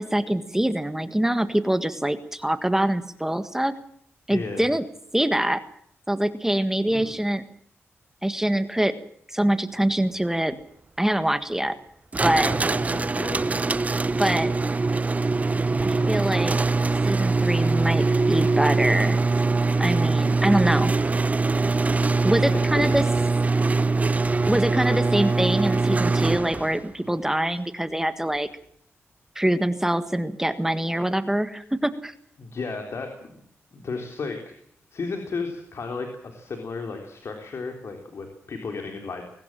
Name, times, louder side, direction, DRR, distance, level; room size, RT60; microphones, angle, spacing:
voice 1, 0.0-3.7 4.3-4.8 5.1-5.6 6.1-7.4 8.2-8.9 9.3-10.6 11.0-11.8 12.2-12.5 14.2-14.5 15.8-16.6 17.0-19.2 19.8-20.9 22.2-23.1 24.5-28.5 29.4-32.1, right 1 dB, 10° right, 11 dB, 1.6 m, -24 dB
voice 2, 4.3-4.7 6.9-7.2 12.4-13.4 22.5-22.9 24.9-25.0 32.4-33.4 33.7-34.5 34.9-39.2, left 4 dB, 60° left, 3 dB, 3.7 m, -34 dB
sound 1, 12.1-26.8, right 3 dB, 30° right, 0.8 m, -23 dB
21.5 x 18.5 x 7.5 m, 0.67 s
cardioid pair, 80°, 5 cm